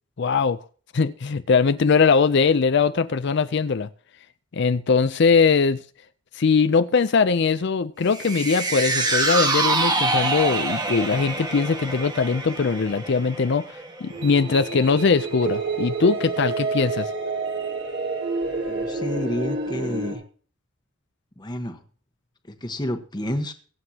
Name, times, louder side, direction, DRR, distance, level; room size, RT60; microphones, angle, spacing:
voice 1, 0.2-0.6 0.9-3.9 4.5-5.8 6.3-17.1, left 5 dB, 55° left, 0.5 m, -21 dB
sound 1, 8.1-14.5 14.9-15.0, right 2 dB, 20° right, 1.3 m, -26 dB
sound 2, 14.1-20.2, right 3 dB, 65° right, 5.0 m, -28 dB
voice 2, 18.7-20.2 21.4-21.8 22.5-23.5, left 1 dB, 20° left, 1.2 m, -29 dB
23.5 x 8.0 x 2.9 m
head